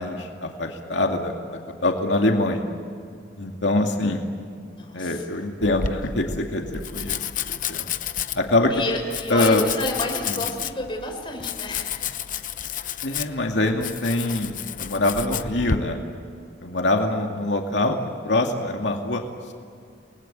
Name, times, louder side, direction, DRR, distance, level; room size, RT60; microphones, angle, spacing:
voice 1, 0.0-2.7 3.4-4.3 4.9-7.2 7.5-7.9 8.3-8.7 9.3-9.6 10.3-10.4 13.0-16.0 16.6-18.0 18.2-19.2, left 2 dB, 90° left, 2 dB, 2.3 m, -24 dB
voice 2, 4.7-5.3 8.7-12.2, left 1 dB, 30° left, 2 dB, 4.7 m, -31 dB
Domestic sounds home sounds, 5.6-15.8, left 7 dB, 45° left, 0.9 m, -31 dB
29.5 x 20.5 x 9.2 m, 2.3 s
head